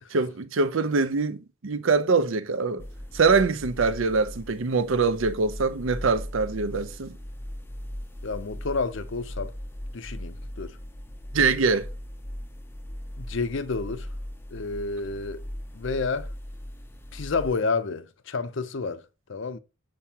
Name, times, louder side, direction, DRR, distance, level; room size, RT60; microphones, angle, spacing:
voice 1, 0.1-2.9 3.1-7.2 11.3-11.9, right 4 dB, 70° right, 0.6 m, -24 dB
sound 1, 2.8-17.5, equal, 10° left, 0.5 m, -39 dB
voice 2, 8.2-9.5 9.9-10.8 13.2-14.1 14.5-15.4 15.7-16.3 17.1-19.6, left 4 dB, 60° left, 0.6 m, -30 dB
7.3 x 4.7 x 2.8 m
head